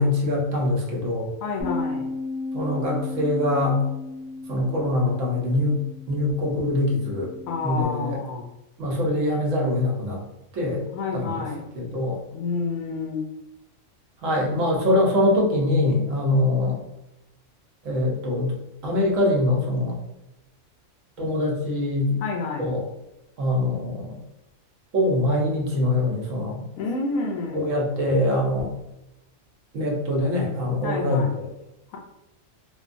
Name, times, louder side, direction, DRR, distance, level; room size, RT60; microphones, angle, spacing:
voice 1, 0.0-1.3 2.5-3.8 4.5-5.8 6.1-7.3 7.6-8.2 8.8-10.2 10.5-10.9 11.1-11.4 11.7-12.2 14.2-16.8 17.8-18.5 18.8-20.0 21.2-22.2 22.6-22.9 23.4-24.2 24.9-26.6 27.5-28.7 29.7-31.5, left 1 dB, 70° right, -1 dB, 1.0 m, -23 dB
voice 2, 1.4-2.1 7.5-8.5 10.9-11.7 12.3-13.2 22.2-22.7 26.8-27.7 30.8-31.4, left 4 dB, 80° left, 0 dB, 1.0 m, -29 dB
Bass guitar, 1.6-7.8, left 3 dB, 45° right, 1.0 m, -35 dB
3.0 x 2.2 x 2.5 m, 0.94 s
omnidirectional pair, 1.4 m